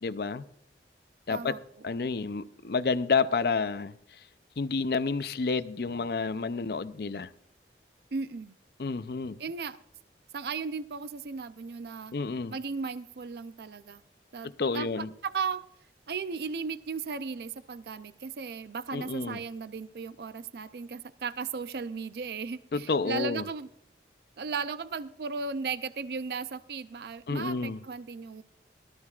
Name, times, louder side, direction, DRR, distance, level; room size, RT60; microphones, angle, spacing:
voice 1, 0.0-0.4 1.3-1.6 1.8-4.3 4.6-7.3 8.8-9.4 12.1-12.5 14.4-15.1 18.9-19.4 22.7-23.5 27.3-27.8, left 4 dB, 60° left, 0.5 m, -30 dB
voice 2, 1.3-1.6 8.1-8.6 9.4-9.8 10.3-12.1 12.5-14.0 14.3-14.5 14.7-15.6 16.1-23.7 24.4-28.4, right 5 dB, 60° right, 0.4 m, -36 dB
18.0 x 13.0 x 2.4 m
head